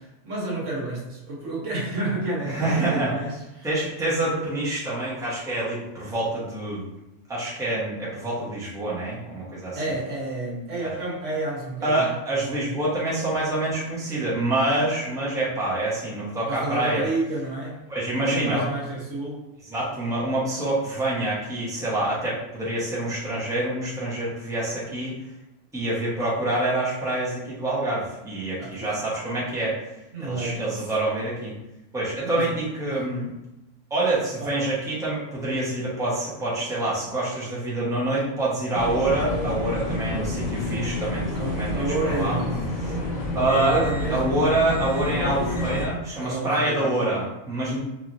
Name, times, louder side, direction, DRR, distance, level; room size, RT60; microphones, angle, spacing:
voice 1, 0.0-3.7 4.2-4.4 9.7-12.2 16.5-17.8 18.1-19.4 28.6-29.0 30.1-30.9 32.2-32.5 32.9-33.0 34.4-34.5 41.3-43.1 43.5-44.3 46.2-47.2, right 2 dB, 75° right, -5 dB, 1.5 m, -30 dB
voice 2, 2.4-3.1 3.6-6.9 7.3-9.8 10.8-10.9 11.8-17.0 17.9-18.6 19.7-25.1 25.7-29.7 30.2-31.5 31.9-33.3 33.9-42.4 43.3-43.8 44.1-47.8, right 2 dB, 5° right, -8 dB, 0.9 m, -26 dB
sound 1, 38.7-45.9, left 1 dB, 45° left, 0.7 m, -29 dB
4.5 x 3.1 x 2.6 m, 0.93 s
omnidirectional pair, 1.3 m